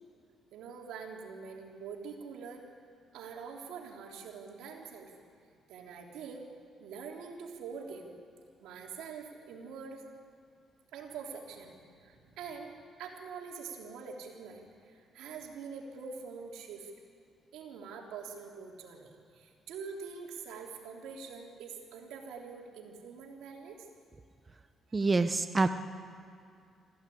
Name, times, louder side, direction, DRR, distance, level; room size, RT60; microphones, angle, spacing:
voice 1, 0.5-2.6 3.1-5.1 5.7-6.5 6.8-8.1 8.6-10.0 10.9-16.9 17.5-23.8, right 5 dB, 90° right, 1 dB, 3.3 m, -45 dB
voice 2, 24.9-25.7, right 3 dB, 25° right, 9 dB, 0.9 m, -26 dB
25.0 x 15.5 x 8.6 m, 2.4 s
cardioid pair, 90°, 0 cm